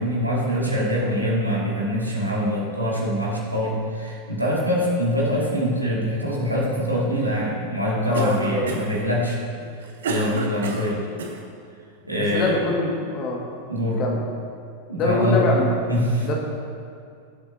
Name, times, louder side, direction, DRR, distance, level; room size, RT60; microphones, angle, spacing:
voice 1, 0.0-9.4 10.0-11.0 12.1-12.6 13.7-14.0 14.9-15.6 15.9-16.3, equal, 85° right, -5 dB, 2.5 m, -24 dB
voice 2, 8.0-8.7 12.2-13.4 14.0-14.2 15.0-15.7 16.2-16.3, left 3 dB, 35° left, -1 dB, 2.0 m, -24 dB
Cough, 8.1-9.0 9.6-11.4, right 4 dB, 60° right, 1.1 m, -30 dB
17.5 x 7.9 x 2.9 m, 2.3 s
figure-of-eight pair, 90°, 0 cm